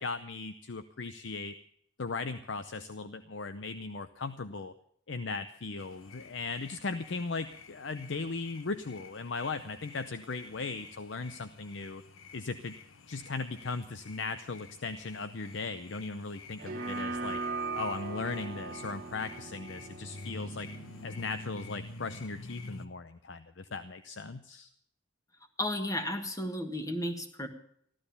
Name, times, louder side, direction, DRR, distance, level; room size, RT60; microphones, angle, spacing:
voice 1, 0.0-1.5 2.0-4.7 5.1-12.0 12.3-12.8 13.1-17.4 17.7-20.7 21.0-24.7, left 4 dB, 65° left, 11 dB, 0.7 m, -38 dB
sound 1, 5.8-22.9, left 3 dB, 90° left, 1.1 m, -50 dB
sound 2, 16.6-21.6, right 3 dB, 45° right, 1.4 m, -39 dB
voice 2, 25.6-27.5, left 1 dB, 15° left, 7 dB, 1.5 m, -33 dB
15.0 x 12.0 x 6.9 m, 0.65 s
head